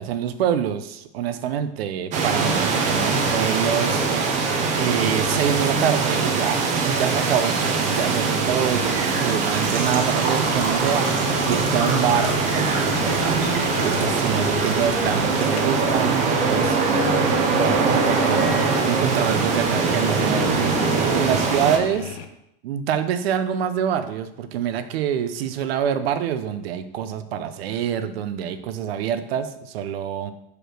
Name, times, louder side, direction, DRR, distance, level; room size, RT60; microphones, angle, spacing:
voice 1, 0.0-4.0 4.7-11.1 11.5-13.4 13.8-18.5 18.8-20.7 21.1-22.2 22.6-30.3, right 9 dB, 75° right, 10 dB, 0.8 m, -26 dB
sound 1, 2.1-21.8, right 4 dB, 25° right, 0.8 m, -22 dB
Engine / Trickle dribble / Fill (with liquid), 8.3-20.3, right 3 dB, 45° right, 1.6 m, -33 dB
sound 2, 11.9-22.2, left 8 dB, 75° left, 0.9 m, -36 dB
5.0 x 4.9 x 6.2 m, 0.80 s
supercardioid pair, 165°, 30 cm